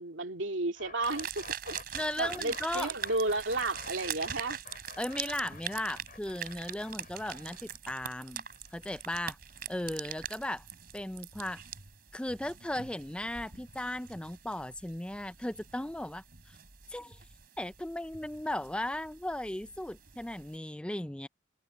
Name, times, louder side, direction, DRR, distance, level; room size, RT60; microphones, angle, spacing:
voice 1, 0.0-4.6, right 2 dB, 85° right, 2.6 m, -33 dB
sound 1, 0.7-10.6, left 4 dB, 45° left, 4.8 m, -50 dB
sound 2, 1.0-20.6, right 9 dB, 50° right, 3.7 m, -43 dB
voice 2, 1.9-2.9 5.0-8.4 8.7-9.4 9.7-10.7 10.9-11.6 12.1-16.6 16.9-17.2 17.6-21.3, left 1 dB, 5° left, 0.4 m, -36 dB
head